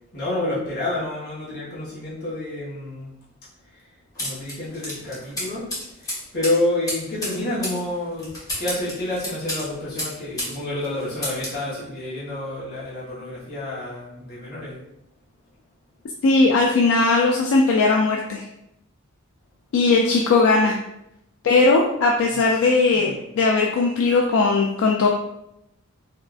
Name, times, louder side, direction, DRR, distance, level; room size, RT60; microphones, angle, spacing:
voice 1, 0.1-3.1 3.7-5.7 6.0-14.8 22.2-23.2, left 1 dB, 45° left, -10 dB, 1.0 m, -29 dB
sound 1, 4.2-10.6 10.8-11.6, left 1 dB, 15° left, 0.8 m, -32 dB
voice 2, 16.2-18.4 19.7-20.8 21.4-25.1, left 3 dB, 60° left, 0 dB, 0.3 m, -18 dB
3.5 x 2.4 x 2.3 m, 0.82 s
head